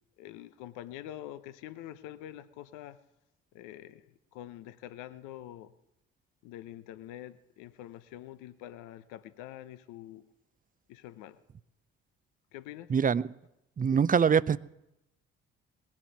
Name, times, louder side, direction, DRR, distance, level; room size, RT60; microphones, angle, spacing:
voice 1, 0.2-3.0 3.5-5.7 6.4-10.2 10.9-11.4 12.5-12.9, left 12 dB, 75° left, 0.8 m, -45 dB
voice 2, 12.9-13.3 13.8-14.6, right 6 dB, 25° right, 0.6 m, -24 dB
19.0 x 7.5 x 9.4 m
hypercardioid pair, 50°, 31 cm